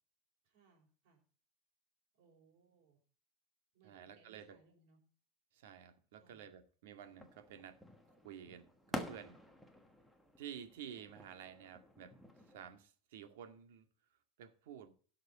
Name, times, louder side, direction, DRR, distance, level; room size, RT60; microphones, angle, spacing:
voice 1, 0.4-1.2 2.2-3.0 3.7-5.0 6.2-6.5, right 5 dB, 45° right, 4.9 m, -69 dB
voice 2, 3.8-4.6 5.5-7.8 8.1-9.4 10.4-12.2 12.5-13.9 14.4-14.9, right 9 dB, 70° right, 2.0 m, -52 dB
sound 1, 7.0-12.7, equal, ahead, 1.2 m, -49 dB
17.0 x 6.6 x 4.2 m
supercardioid pair, 170°, 0 cm